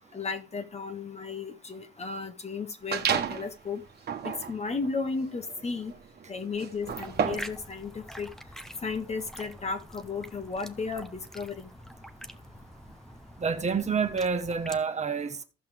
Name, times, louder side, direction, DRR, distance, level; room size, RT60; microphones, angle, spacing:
voice 1, 0.1-3.8 4.2-5.9 6.3-8.3 8.8-11.7, left 4 dB, 35° left, 1.6 m, -34 dB
sound 1, 2.9-3.5 4.0-7.6, right 7 dB, 55° right, 1.3 m, -32 dB
sound 2, 6.8-14.8, equal, ahead, 1.0 m, -46 dB
voice 2, 13.4-15.4, right 5 dB, 35° right, 1.3 m, -28 dB
15.5 x 5.7 x 3.5 m
cardioid pair, 90°, 20 cm